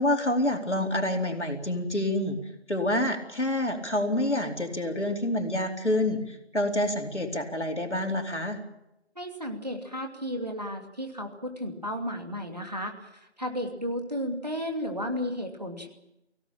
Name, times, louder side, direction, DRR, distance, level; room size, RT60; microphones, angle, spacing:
voice 1, 0.0-2.4 2.7-8.6, left 1 dB, 75° left, 3 dB, 4.3 m, -27 dB
voice 2, 9.2-15.9, equal, 35° right, 3 dB, 2.7 m, -33 dB
23.5 x 17.5 x 8.9 m, 0.87 s
figure-of-eight pair, 175°, 35 cm